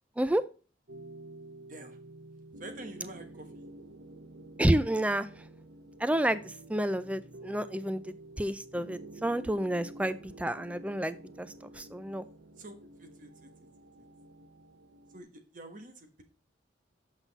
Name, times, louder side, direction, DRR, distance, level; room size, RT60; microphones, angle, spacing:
sound 1, 0.9-15.2, right 2 dB, 80° right, 0.9 m, -50 dB
voice 1, 2.6-3.7 12.6-12.7 13.0-13.5 14.0-14.1 15.1-16.2, right 2 dB, 45° right, 6 dB, 1.2 m, -47 dB
voice 2, 4.6-5.3 6.0-6.4 6.7-8.0 8.4-11.5 11.8-12.2, right 1 dB, 5° right, 14 dB, 0.4 m, -29 dB
8.1 x 5.7 x 4.0 m, 0.36 s
head